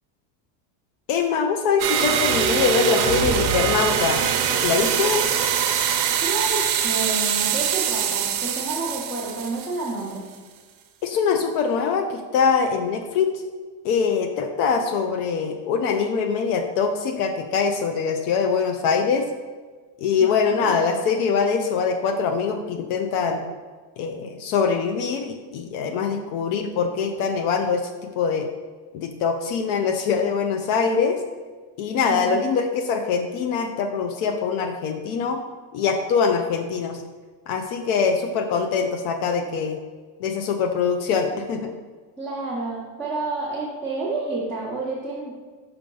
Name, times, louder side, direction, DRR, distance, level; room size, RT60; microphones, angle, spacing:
voice 1, 1.1-4.2 4.6-5.3 11.0-13.3 13.8-19.3 20.0-23.4 24.0-27.8 28.1-28.5 28.9-31.2 31.8-35.4 35.7-37.0 37.5-39.8 40.2-41.7, left 5 dB, 65° left, 6 dB, 0.7 m, -23 dB
sound 1, 1.8-10.1, right 8 dB, 55° right, 0.7 m, -23 dB
voice 2, 6.2-10.3 20.2-20.8 32.0-32.5 42.2-45.3, right 3 dB, 5° left, -8 dB, 0.9 m, -30 dB
5.8 x 5.2 x 3.8 m, 1.4 s
cardioid pair, 165°, 49 cm